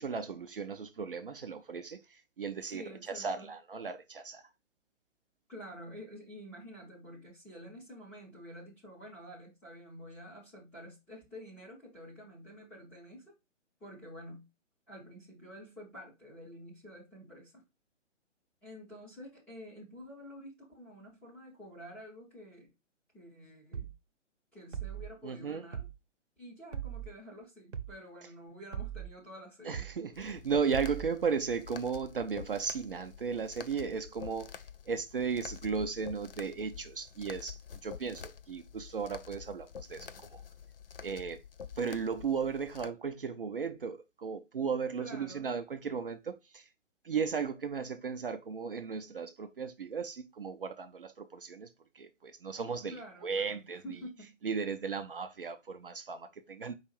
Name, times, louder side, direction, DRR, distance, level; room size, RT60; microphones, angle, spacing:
voice 1, 0.0-4.4 25.2-25.7 29.6-34.5 34.9-40.4 41.0-41.4 41.8-46.7 47.0-51.7 51.9-54.0 54.4-56.7, right 5 dB, 45° right, 0.5 m, -35 dB
voice 2, 2.6-3.5 5.5-13.4 13.8-14.4 14.9-17.6 18.6-22.7 23.1-23.9 24.5-25.8 26.4-29.9 45.0-45.5 52.9-54.4, equal, 5° left, 0.6 m, -49 dB
sound 1, 23.7-24.0 24.7-25.1 25.7-26.0 26.7-27.1 27.7-28.0 28.7-29.1 29.7-30.0 30.7-31.1, right 9 dB, 70° right, 0.8 m, -39 dB
sound 2, 30.1-42.9, left 7 dB, 50° left, 0.4 m, -48 dB
4.7 x 2.5 x 4.4 m
figure-of-eight pair, 135°, 37 cm